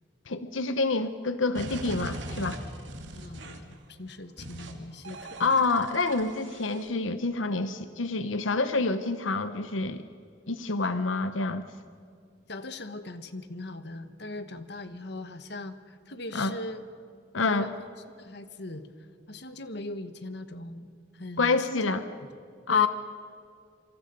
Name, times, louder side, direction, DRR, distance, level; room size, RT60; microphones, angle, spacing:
voice 1, 0.3-2.6 5.4-10.0 10.5-11.7 16.3-16.6 17.3-17.7 21.4-22.0 22.7-22.9, left 3 dB, 90° left, 10 dB, 1.0 m, -27 dB
sound 1, 1.5-3.7 4.4-4.7 5.0-6.9, right 1 dB, 70° right, 2.9 m, -40 dB
voice 2, 3.1-5.5 12.5-16.8 17.5-17.7 18.2-18.9 19.3-21.9 22.7-22.9, left 2 dB, 60° left, 10 dB, 1.4 m, -40 dB
27.0 x 26.0 x 5.4 m, 2.3 s
head